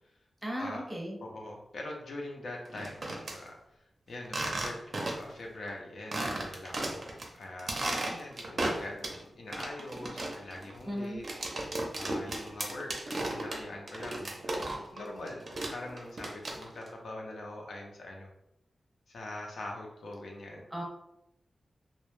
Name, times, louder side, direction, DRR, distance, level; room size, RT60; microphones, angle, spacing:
voice 1, 0.4-1.2 10.8-11.2 20.7-20.8, equal, 10° right, -3 dB, 0.7 m, -36 dB
voice 2, 1.2-7.1 7.3-11.2 12.0-18.3 19.1-20.6, left 2 dB, 80° left, 0 dB, 0.5 m, -43 dB
sound 1, 2.7-3.4 4.2-5.4 5.7-5.8 6.1-7.3 7.6-9.2 9.5-15.0 15.3-16.9, right 2 dB, 50° right, 0.4 m, -35 dB
2.0 x 2.0 x 3.0 m, 0.81 s
wide cardioid pair, 135°, 0 cm